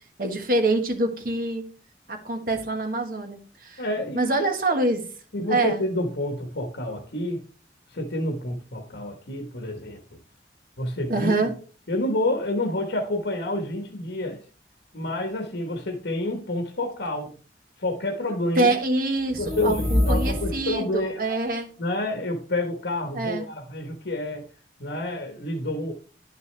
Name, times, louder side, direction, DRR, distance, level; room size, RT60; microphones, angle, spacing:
voice 1, 0.2-1.6 2.1-3.8 4.1-5.1 5.5-5.8 11.1-11.5 18.5-21.7 23.1-23.4, right 2 dB, 50° right, 4 dB, 1.5 m, -25 dB
voice 2, 3.8-4.3 5.3-7.4 7.9-10.0 10.8-11.4 11.9-14.4 14.9-17.3 17.8-18.7 19.4-21.4 21.8-24.5 24.8-25.9, left 1 dB, 80° left, 4 dB, 1.3 m, -28 dB
sound 1, 19.3-20.8, left 1 dB, 35° right, 3.9 m, -25 dB
10.0 x 6.7 x 3.3 m, 0.39 s
head